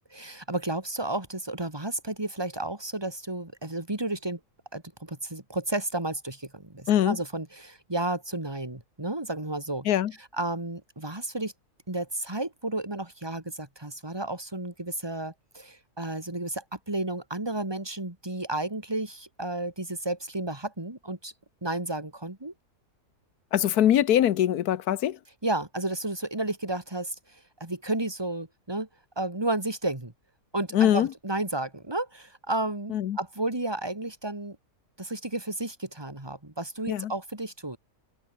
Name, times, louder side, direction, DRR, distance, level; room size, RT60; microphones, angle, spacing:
voice 1, 0.1-4.4 4.7-9.9 10.3-11.5 11.9-21.3 21.6-22.5 25.4-28.9 29.2-30.1 30.5-34.6 35.0-37.8, right 2 dB, 15° right, 2.8 m, -32 dB
voice 2, 23.5-25.2 30.7-31.1 32.9-33.2 36.9-37.1, left 11 dB, 80° left, 1.4 m, -22 dB
open air
omnidirectional pair, 1.6 m